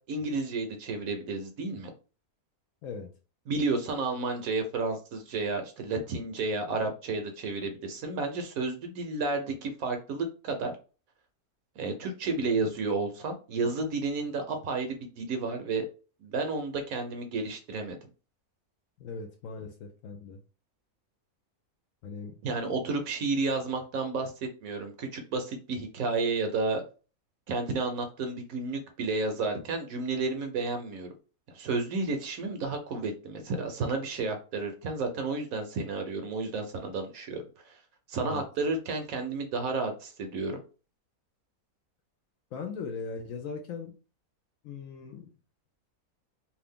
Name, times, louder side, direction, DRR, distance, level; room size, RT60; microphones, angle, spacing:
voice 1, 0.1-1.9 3.5-10.7 11.8-15.8 16.2-18.0 22.4-26.8 27.5-31.1 31.5-37.8 38.1-40.6, right 3 dB, 70° right, 6 dB, 1.1 m, -31 dB
voice 2, 2.8-3.1 19.0-20.4 22.0-22.4 38.2-38.4 42.5-43.9 44.6-45.3, left 5 dB, 70° left, 4 dB, 0.9 m, -39 dB
2.7 x 2.4 x 3.5 m, 0.35 s
omnidirectional pair, 1.6 m